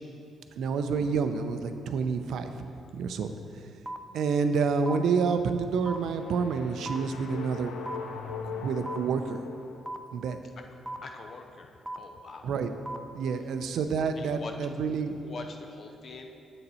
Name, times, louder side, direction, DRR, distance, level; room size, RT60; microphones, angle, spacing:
voice 1, 0.6-2.5 2.9-3.3 4.1-7.8 8.6-9.4 10.1-10.4 12.4-12.7 13.1-15.2, right 5 dB, 75° right, 8 dB, 0.5 m, -28 dB
sound 1, 3.9-4.0 4.9-5.0 5.9-6.0 6.9-7.0 7.9-8.0 8.9-9.0 9.9-10.0 10.9-11.0 11.9-12.0 12.9-13.0, right 2 dB, 10° right, 0.3 m, -35 dB
sound 2, 5.8-10.2, left 6 dB, 90° left, 0.6 m, -41 dB
voice 2, 11.0-12.5 14.2-14.5 15.2-16.3, left 4 dB, 50° left, 4 dB, 0.5 m, -43 dB
7.9 x 6.8 x 4.2 m, 2.6 s
cardioid pair, 125°, 0 cm